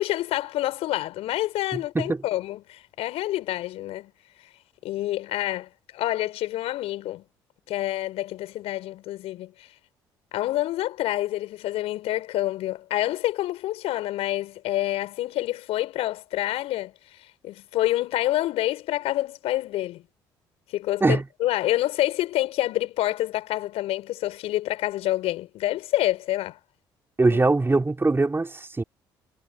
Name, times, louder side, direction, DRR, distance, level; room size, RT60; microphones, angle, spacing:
voice 1, 0.0-4.1 4.8-7.2 7.7-9.7 10.3-20.0 20.7-26.6, left 15 dB, 70° left, 5.2 m, -27 dB
voice 2, 1.7-2.2 21.0-21.2 27.2-28.8, right 3 dB, 20° right, 3.7 m, -22 dB
hypercardioid pair, 55°, 11 cm